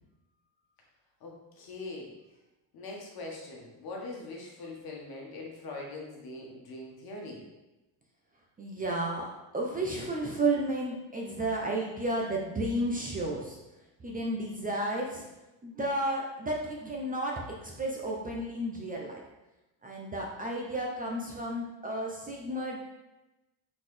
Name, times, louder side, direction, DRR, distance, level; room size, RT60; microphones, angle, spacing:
voice 1, 1.2-2.1 2.7-7.4, left 2 dB, 50° left, -1 dB, 1.4 m, -42 dB
voice 2, 8.6-13.6 14.0-15.3 15.6-19.2 19.8-22.8, right 1 dB, 20° right, -2 dB, 0.7 m, -32 dB
4.2 x 3.9 x 3.2 m, 1.0 s
supercardioid pair, 100°, 46 cm